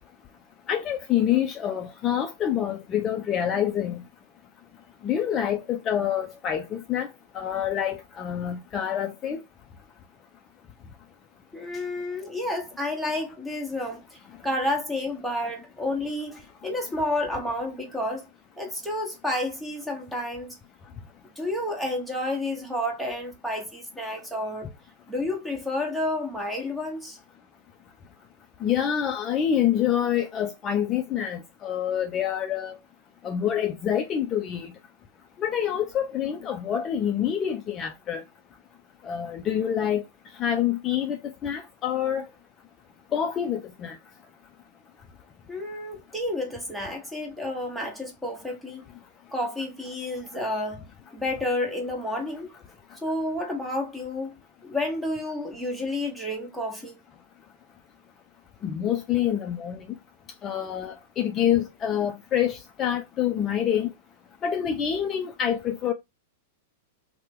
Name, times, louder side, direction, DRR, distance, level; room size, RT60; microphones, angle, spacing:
voice 1, 0.7-4.0 5.0-7.1 7.3-9.4 28.6-32.8 33.2-34.7 35.4-38.2 39.0-40.0 40.4-42.2 43.1-43.9 58.6-59.8 60.4-63.9 64.4-65.9, left 9 dB, 30° left, 0.4 m, -26 dB
voice 2, 11.5-18.3 18.6-20.6 21.4-24.7 25.1-27.2 45.5-48.8 49.3-50.8 51.1-52.5 53.0-54.4 54.6-57.0, left 1 dB, ahead, 1.0 m, -30 dB
2.8 x 2.1 x 3.4 m
hypercardioid pair, 105°, 0 cm